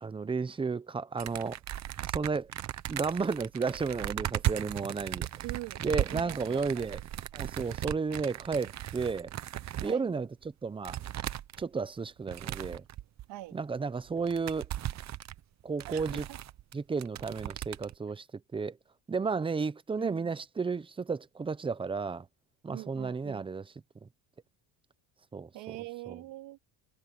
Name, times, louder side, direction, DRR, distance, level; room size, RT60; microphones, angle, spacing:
voice 1, 0.0-1.6 2.1-2.5 2.9-5.3 5.8-7.0 7.3-9.3 9.8-10.3 10.6-11.0 11.6-12.8 13.5-14.7 15.6-16.3 16.7-18.2 18.5-18.8 19.1-22.3 22.6-23.6 24.0-24.1 25.3-25.5 26.1-26.2, right 4 dB, 10° right, 0.6 m, -32 dB
sound 1, 1.2-9.9 10.4-10.5 10.8-11.6 12.2-13.3 13.8-13.9 14.1-16.7 17.0-17.9, right 13 dB, 40° right, 0.9 m, -37 dB
voice 2, 5.4-7.0 9.8-10.1 13.3-13.6 15.9-16.4 20.0-20.3 22.7-23.5 25.5-26.6, right 18 dB, 75° right, 2.4 m, -44 dB
cardioid pair, 145°, 44 cm